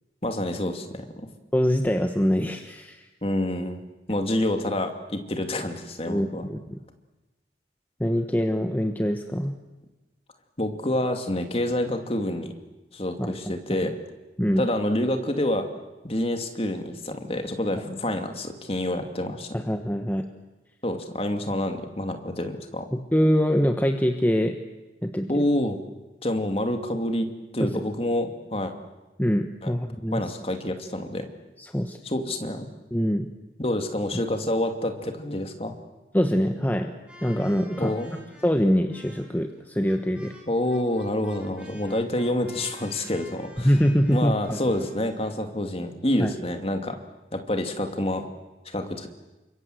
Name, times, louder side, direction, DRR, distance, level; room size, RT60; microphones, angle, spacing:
voice 1, 0.2-0.9 3.2-3.8 4.1-6.4 10.6-12.5 12.9-13.9 14.6-15.7 16.0-19.5 20.8-22.9 25.3-25.8 26.2-27.3 27.5-28.7 29.6-29.7 30.1-31.3 32.0-32.7 33.6-35.7 37.8-38.2 40.5-43.7 44.1-47.0 47.3-48.3 48.7-49.1, left 1 dB, 30° left, 5 dB, 2.5 m, -27 dB
voice 2, 1.5-3.1 6.1-6.8 8.0-9.6 13.2-13.3 14.4-14.6 19.5-20.3 22.9-24.6 25.0-25.4 27.6-27.7 29.2-30.2 31.6-32.0 32.9-33.3 36.1-36.9 37.2-37.9 38.4-40.4 43.6-44.6 46.2-46.3, equal, 10° left, 4 dB, 1.2 m, -24 dB
sound 1, 37.1-45.4, left 1 dB, 5° right, 5.8 m, -50 dB
29.0 x 25.0 x 7.9 m, 1.1 s
head